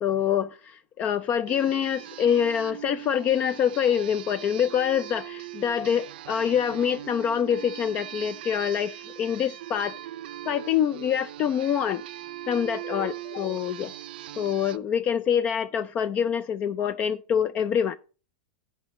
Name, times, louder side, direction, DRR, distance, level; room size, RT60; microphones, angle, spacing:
voice 1, 0.0-9.9 10.5-12.0 12.5-13.9 14.4-18.0, left 8 dB, 25° left, 0.3 m, -25 dB
sound 1, 1.5-14.8, right 13 dB, 70° right, 0.5 m, -40 dB
10.0 x 4.9 x 5.2 m
supercardioid pair, 150°, 5 cm